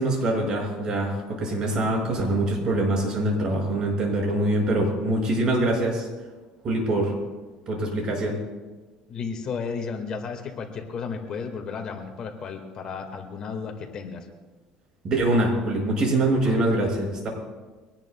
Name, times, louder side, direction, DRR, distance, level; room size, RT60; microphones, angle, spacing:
voice 1, 0.0-6.1 6.6-7.1 7.7-8.4 15.0-17.3, right 1 dB, 40° right, 0 dB, 6.1 m, -24 dB
voice 2, 9.1-14.3 16.4-16.6, left 5 dB, 40° left, 4 dB, 2.0 m, -33 dB
24.5 x 18.5 x 2.3 m, 1.3 s
cardioid pair, 130°, 2 cm